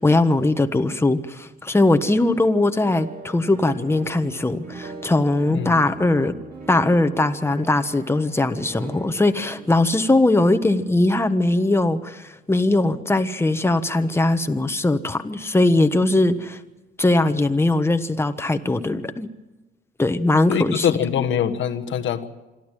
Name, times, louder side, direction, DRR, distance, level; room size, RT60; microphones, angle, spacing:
voice 1, 0.0-6.3 6.7-16.6 17.0-19.3 20.0-21.0, left 2 dB, 10° left, 1.3 m, -20 dB
sound 1, 2.0-11.9, right 3 dB, 45° right, 3.5 m, -41 dB
voice 2, 20.5-22.3, left 9 dB, 75° left, 1.5 m, -23 dB
26.5 x 12.0 x 9.1 m
cardioid pair, 90°, 20 cm